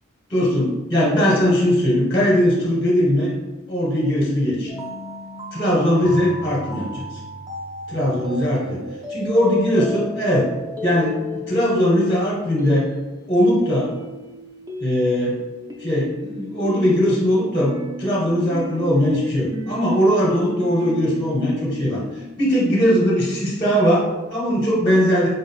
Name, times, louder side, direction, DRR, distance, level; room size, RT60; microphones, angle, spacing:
voice 1, 0.3-3.3 3.7-4.7 5.5-7.2 7.9-8.8 9.1-10.5 10.8-12.9 13.3-13.9 14.8-15.4 15.8-22.0 22.4-25.3, equal, 20° left, -4 dB, 0.8 m, -20 dB
sound 1, 4.7-23.2, left 1 dB, 15° right, 0.5 m, -35 dB
3.9 x 2.5 x 4.0 m, 1.1 s
head